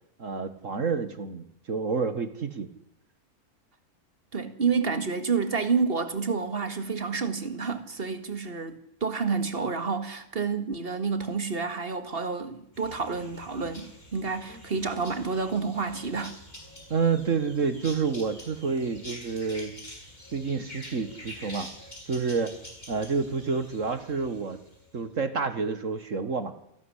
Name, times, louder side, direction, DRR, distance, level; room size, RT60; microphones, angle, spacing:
voice 1, 0.2-2.7 16.9-19.8 20.3-21.7 22.1-22.6 22.9-24.6 24.9-26.5, right 5 dB, 55° right, 1.9 m, -29 dB
voice 2, 4.3-16.3, right 5 dB, 40° right, 2.2 m, -29 dB
sound 1, 12.7-25.0, left 1 dB, 30° left, 6.8 m, -46 dB
28.0 x 12.5 x 10.0 m
omnidirectional pair, 1.6 m